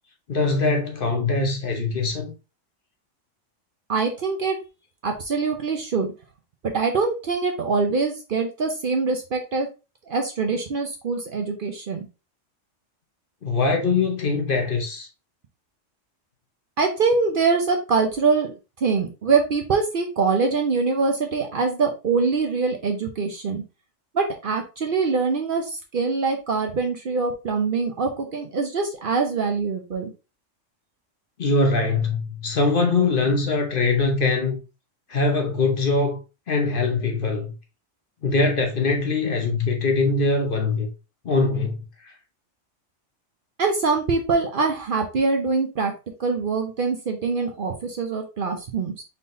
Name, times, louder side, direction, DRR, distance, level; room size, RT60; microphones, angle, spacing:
voice 1, 0.3-2.3 13.4-15.1 31.4-34.6 35.1-36.2 36.5-37.5 38.2-40.9 41.2-41.8, left 3 dB, 50° left, 1.0 m, -22 dB
voice 2, 3.9-4.6 5.0-6.1 6.6-9.7 10.1-12.1 16.8-18.5 18.8-23.6 24.1-30.1 43.6-45.9 46.2-49.0, right 4 dB, 50° right, 0.8 m, -24 dB
4.2 x 3.7 x 2.6 m
omnidirectional pair, 1.3 m